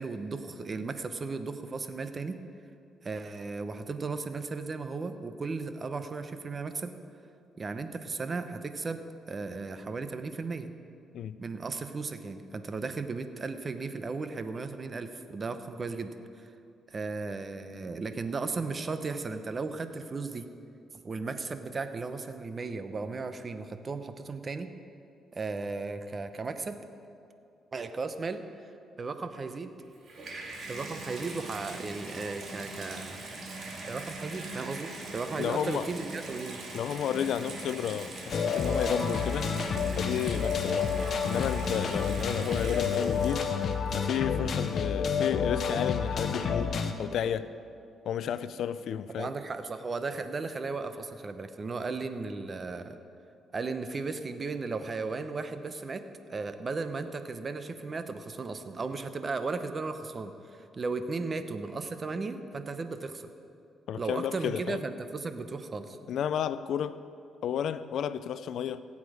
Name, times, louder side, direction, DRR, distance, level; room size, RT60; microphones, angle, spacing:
voice 1, 0.0-2.4 3.0-6.9 7.6-10.7 11.4-16.5 16.9-20.5 21.0-24.7 25.3-26.8 27.7-28.7 29.0-29.7 30.7-33.3 33.9-36.6 49.2-53.0 53.5-56.0 56.3-63.3 63.9-66.0, right 4 dB, 35° right, 9 dB, 0.8 m, -35 dB
Water tap faucet / Bathtub (filling or washing), 29.8-43.9 44.6-44.7, right 2 dB, 55° right, 2.5 m, -41 dB
voice 2, 35.4-35.9 36.7-39.5 40.0-43.5 43.9-47.5 48.1-49.3 63.9-64.8 66.1-67.0 67.4-68.8, left 9 dB, 70° left, 14 dB, 0.5 m, -32 dB
sound 1, 38.3-46.9, left 6 dB, 55° left, 0.9 m, -29 dB
16.5 x 8.5 x 5.0 m, 2.5 s
cardioid pair, 90°, 0 cm